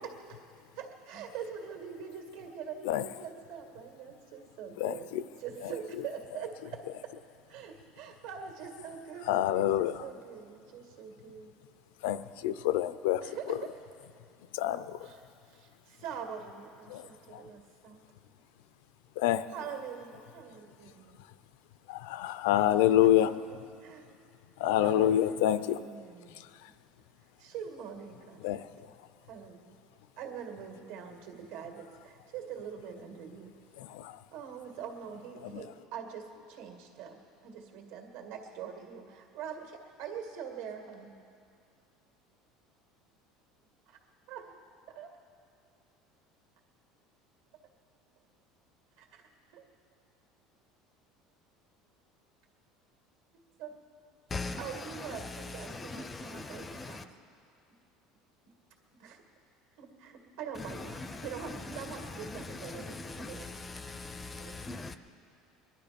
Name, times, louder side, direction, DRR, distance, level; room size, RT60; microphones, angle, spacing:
voice 1, 0.8-7.1 7.5-11.5 13.2-13.7 15.0-18.0 19.5-21.2 22.9-24.1 24.8-26.5 27.4-28.9 29.3-29.8 30.2-33.5 34.3-37.2 37.4-41.2 43.9-44.0 44.3-44.5 44.9-45.1 49.0-49.6 53.6-53.8 54.6-57.1 59.0-59.2 59.8-63.5 64.3-64.5, right 7 dB, 70° right, 3 dB, 2.0 m, -44 dB
voice 2, 4.8-5.2 9.3-10.0 12.0-13.2 13.5-13.6 14.5-15.0 16.9-17.0 17.3-17.4 19.2-19.5 21.9-23.3 24.6-25.8 28.4-28.7 33.8-34.2 35.5-35.6, left 12 dB, 90° left, 14 dB, 0.5 m, -27 dB
voice 3, 54.3-57.1 60.5-65.0, left 3 dB, 15° left, 10 dB, 0.4 m, -41 dB
21.0 x 12.0 x 5.2 m, 2.4 s
cardioid pair, 170°, 0 cm